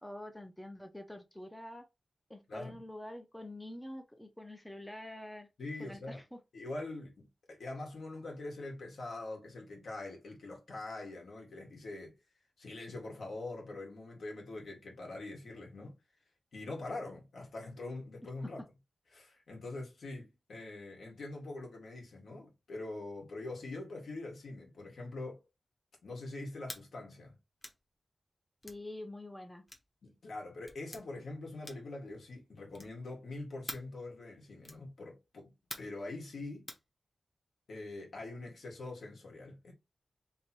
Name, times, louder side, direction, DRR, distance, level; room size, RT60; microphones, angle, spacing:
voice 1, 0.0-1.8 2.3-5.5 5.8-6.4 18.4-18.7 28.6-29.6, left 1 dB, 5° left, 0.5 m, -46 dB
voice 2, 2.5-2.8 5.6-6.2 6.5-12.1 12.6-16.0 16.5-18.6 19.1-25.4 26.0-27.4 30.0-35.5 35.8-36.7 37.7-39.7, left 2 dB, 75° left, 1.7 m, -44 dB
sound 1, 26.6-26.9 27.6-27.8 28.6-28.8 29.7-29.9 30.7-31.0 31.6-32.0 32.7-33.0 33.7-33.9 34.6-34.9 35.7-36.0 36.7-36.9, left 1 dB, 25° left, 1.0 m, -46 dB
3.3 x 2.9 x 4.3 m
wide cardioid pair, 135°, 0 cm